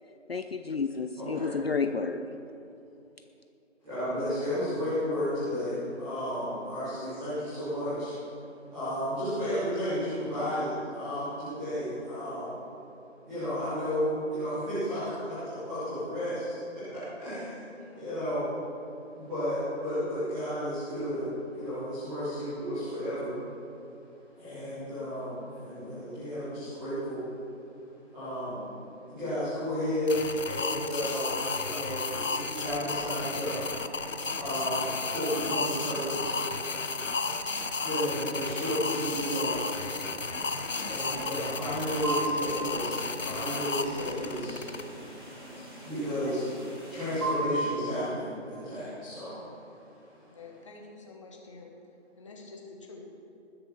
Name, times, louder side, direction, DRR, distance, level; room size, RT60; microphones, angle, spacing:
voice 1, 0.3-2.3, left 4 dB, 55° left, 8 dB, 0.6 m, -31 dB
voice 2, 1.2-1.6 3.8-8.1 8.7-12.6 13.2-17.6 17.9-18.5 19.1-23.4 24.4-27.2 28.1-28.7 29.1-33.7 34.4-36.4 37.8-39.7 40.9-44.6 44.9-45.0 45.7-46.4 46.9-50.4, equal, ahead, -17 dB, 0.9 m, -33 dB
voice 3, 17.8-18.2 40.7-40.9 46.2-46.4 50.3-51.7 52.2-53.1, left 4 dB, 25° left, 0 dB, 1.5 m, -47 dB
sound 1, 30.1-44.8, left 4 dB, 85° left, 0.9 m, -33 dB
sound 2, 32.8-43.6, right 3 dB, 45° right, 1.6 m, -48 dB
sound 3, 40.6-47.3, right 2 dB, 20° right, 2.1 m, -38 dB
20.0 x 6.8 x 5.6 m, 2.9 s
figure-of-eight pair, 155°, 37 cm